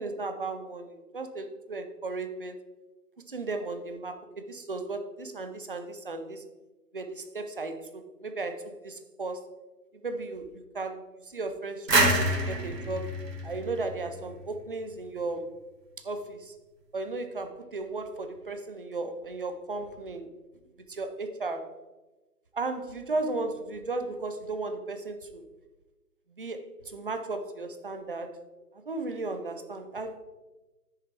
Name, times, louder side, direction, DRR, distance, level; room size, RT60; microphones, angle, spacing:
voice 1, 0.0-2.6 3.3-6.4 6.9-9.5 10.0-10.5 10.7-11.0 11.3-13.1 13.4-15.5 16.0-16.5 16.9-20.3 20.9-21.7 22.5-25.4 26.4-28.4 28.9-30.2, right 3 dB, 35° right, 8 dB, 0.6 m, -35 dB
sound 1, 11.9-14.6, right 1 dB, 85° right, 2.2 m, -27 dB
9.2 x 6.7 x 3.4 m, 1.1 s
hypercardioid pair, 160°, 48 cm